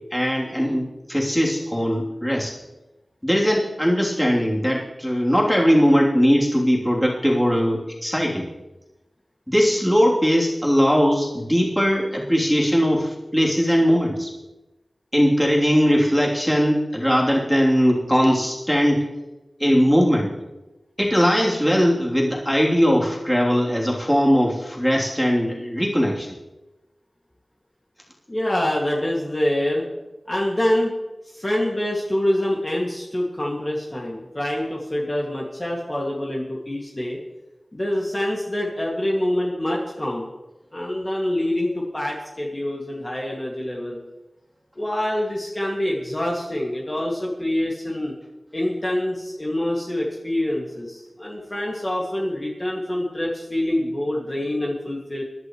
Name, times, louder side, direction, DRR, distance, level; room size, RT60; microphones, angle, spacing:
voice 1, 0.1-2.5 3.2-8.5 9.5-14.3 15.1-19.0 19.6-20.3 21.0-26.3, equal, 5° left, -3 dB, 3.2 m, -20 dB
voice 2, 28.3-29.8 30.3-30.9 31.2-37.2 37.7-40.3 40.7-44.0 44.8-48.1 48.5-55.2, left 1 dB, 30° left, -3 dB, 2.2 m, -25 dB
22.0 x 11.5 x 3.2 m, 1.0 s
wide cardioid pair, 75°, 0 cm